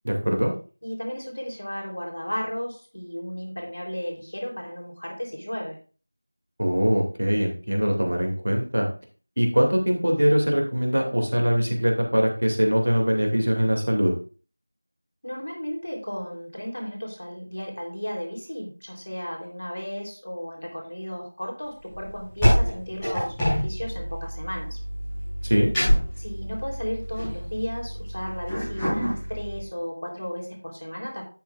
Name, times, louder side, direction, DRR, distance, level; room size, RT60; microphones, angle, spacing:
voice 1, 0.0-0.5 6.6-8.9 9.4-14.1 25.4-25.7, equal, 65° right, 1 dB, 2.4 m, -22 dB
voice 2, 0.8-5.8 15.2-24.8 26.2-31.2, equal, 60° left, -1 dB, 3.4 m, -34 dB
sound 1, 21.9-29.6, equal, 5° left, 3.2 m, -26 dB
10.0 x 7.8 x 2.4 m, 0.37 s
figure-of-eight pair, 175°, 0 cm